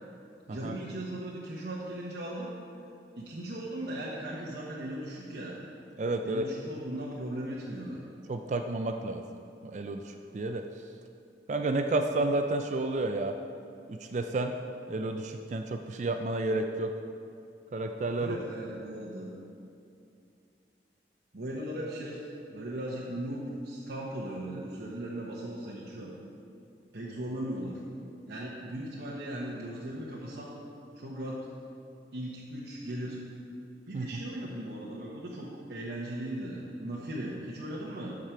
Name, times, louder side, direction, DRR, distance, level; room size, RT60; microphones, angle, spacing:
voice 1, 0.5-2.5 3.2-5.6 6.2-8.0 18.2-19.3 21.3-26.1 26.9-27.8 28.3-30.5 31.0-31.4 32.1-33.2 33.9-38.2, right 1 dB, 70° right, -5 dB, 1.0 m, -38 dB
voice 2, 6.0-6.4 8.3-9.2 9.6-10.6 11.5-13.3 13.9-14.5 14.9-16.9 17.7-18.4 33.9-34.1, right 2 dB, 40° right, 5 dB, 0.4 m, -31 dB
13.0 x 5.0 x 4.5 m, 2.5 s
head